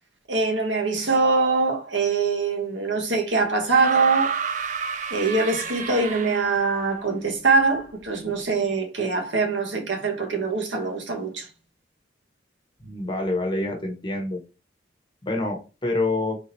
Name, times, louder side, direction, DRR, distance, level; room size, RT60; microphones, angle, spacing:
voice 1, 0.3-4.4 5.1-11.5, right 4 dB, 80° right, 1.2 m, -23 dB
sound 1, 3.7-6.8 8.0-8.1, right 6 dB, 40° right, 0.4 m, -30 dB
voice 2, 12.8-14.4 15.2-16.4, left 2 dB, 25° left, 1.1 m, -27 dB
3.6 x 2.8 x 4.0 m
head